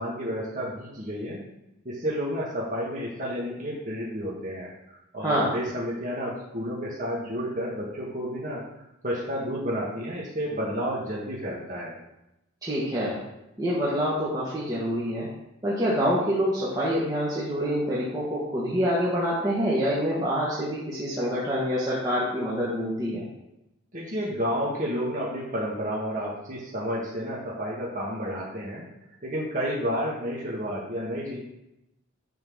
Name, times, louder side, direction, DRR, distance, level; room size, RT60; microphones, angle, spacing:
voice 1, 0.0-1.4 1.9-8.6 9.0-11.9 23.9-28.8 29.2-31.4, equal, 40° right, -5 dB, 1.8 m, -31 dB
voice 2, 5.2-5.5 12.6-13.2 13.6-15.3 15.6-23.3, equal, 20° right, -7 dB, 1.6 m, -26 dB
10.5 x 4.0 x 6.3 m, 0.89 s
head